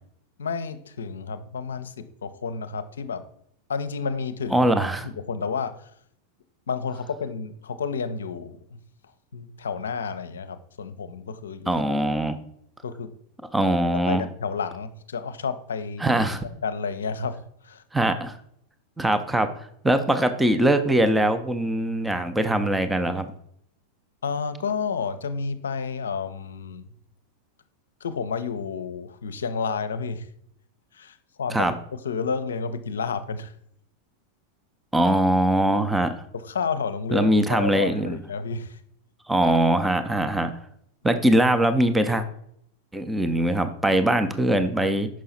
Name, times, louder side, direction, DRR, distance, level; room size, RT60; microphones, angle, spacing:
voice 1, 0.4-3.3 3.7-4.7 5.0-5.9 6.7-8.8 9.3-11.7 12.1-12.2 12.8-13.1 13.8-16.1 16.4-17.8 24.2-26.8 28.0-30.3 30.9-33.5 36.3-38.8, left 5 dB, 65° left, 11 dB, 0.6 m, -31 dB
voice 2, 4.5-5.1 11.7-12.4 13.5-14.2 16.0-16.4 17.9-18.3 19.0-19.5 19.8-23.3 31.5-31.7 34.9-36.1 37.1-38.2 39.3-40.5 41.0-42.2 42.9-45.1, right 1 dB, 5° right, 9 dB, 0.6 m, -22 dB
6.2 x 5.6 x 4.1 m, 0.69 s
figure-of-eight pair, 90°, 0 cm